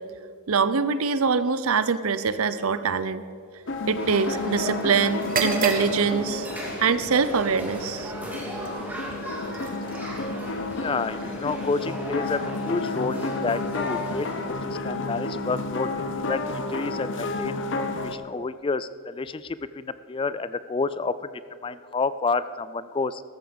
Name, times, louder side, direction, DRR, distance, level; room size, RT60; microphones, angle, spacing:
voice 1, 0.5-3.2 3.9-6.5 6.8-8.1, right 5 dB, 75° right, 14 dB, 0.7 m, -24 dB
sound 1, 3.7-18.2, left 2 dB, 55° left, 0.9 m, -31 dB
sound 2, 4.0-14.5, equal, 10° right, 2.5 m, -38 dB
sound 3, 5.2-13.0, right 4 dB, 40° right, 1.5 m, -35 dB
voice 2, 10.7-15.9 16.2-23.2, left 4 dB, 25° left, 15 dB, 0.3 m, -30 dB
14.0 x 13.5 x 5.3 m, 2.2 s
head